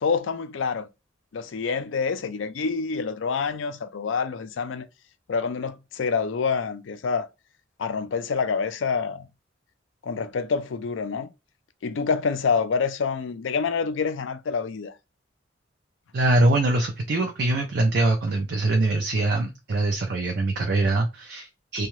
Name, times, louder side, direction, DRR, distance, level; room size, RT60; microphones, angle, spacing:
voice 1, 0.0-0.9 1.3-4.9 5.3-7.3 7.8-9.3 10.0-11.3 11.8-15.0, left 5 dB, 80° left, 0.4 m, -27 dB
voice 2, 16.1-21.9, right 2 dB, 55° right, 0.5 m, -23 dB
2.7 x 2.3 x 3.0 m
head